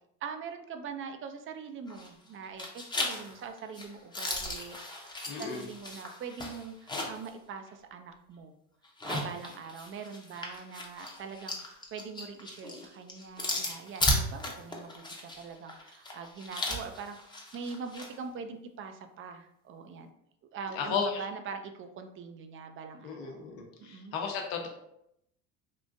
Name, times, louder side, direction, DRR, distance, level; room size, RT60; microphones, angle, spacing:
voice 1, 0.2-8.5 9.0-20.1 20.5-23.5 23.8-24.2, right 5 dB, 35° right, 7 dB, 0.4 m, -43 dB
sound 1, 1.9-2.3 2.6-7.3 7.7-7.8 8.8-18.1, left 1 dB, 10° left, 0.7 m, -36 dB
voice 2, 5.3-5.6 20.8-21.2 23.0-24.7, left 6 dB, 65° left, 3 dB, 0.9 m, -34 dB
3.6 x 2.5 x 2.5 m, 0.79 s
supercardioid pair, 90°, 38 cm